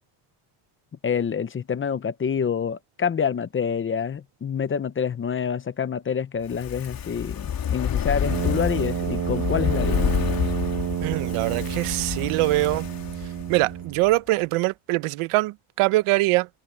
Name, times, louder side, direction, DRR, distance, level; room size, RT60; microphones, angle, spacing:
voice 1, 1.0-10.1, left 7 dB, 25° left, 0.8 m, -27 dB
Fire, 6.4-13.8 14.1-14.2, left 9 dB, 45° left, 3.4 m, -28 dB
Brass instrument, 8.2-14.1, right 11 dB, 45° right, 1.3 m, -30 dB
voice 2, 11.0-12.8 13.5-16.5, right 19 dB, 85° right, 0.9 m, -23 dB
cardioid pair, 145°, 50 cm